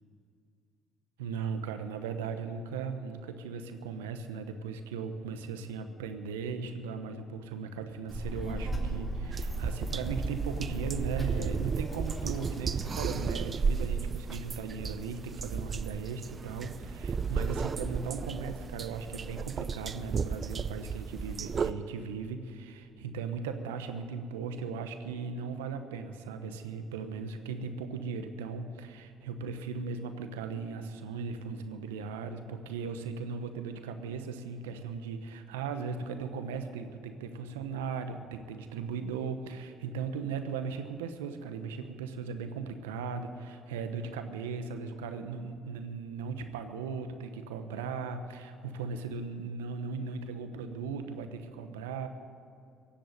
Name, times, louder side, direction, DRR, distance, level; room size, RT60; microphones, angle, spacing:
voice 1, 1.2-52.1, right 5 dB, 90° right, 8 dB, 1.0 m, -37 dB
Child speech kid speaking, 8.1-13.4, right 1 dB, 20° left, 3.5 m, -38 dB
sound 1, 9.3-21.7, right 5 dB, 40° right, 0.6 m, -34 dB
sound 2, 16.2-21.2, right 2 dB, 20° right, 1.6 m, -51 dB
17.0 x 7.7 x 9.3 m, 2.6 s
hypercardioid pair, 60°, 0 cm